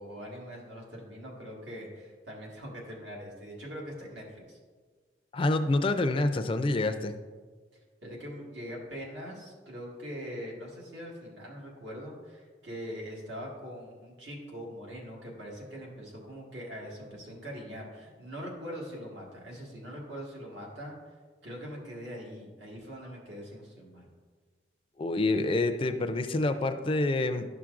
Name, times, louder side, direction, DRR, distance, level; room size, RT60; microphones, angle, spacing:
voice 1, 0.0-4.6 8.0-21.0 21.4-24.1, equal, 80° right, -3 dB, 1.7 m, -42 dB
voice 2, 5.3-7.1 25.0-27.5, left 2 dB, 30° left, 8 dB, 0.3 m, -27 dB
11.0 x 5.9 x 2.5 m, 1.5 s
head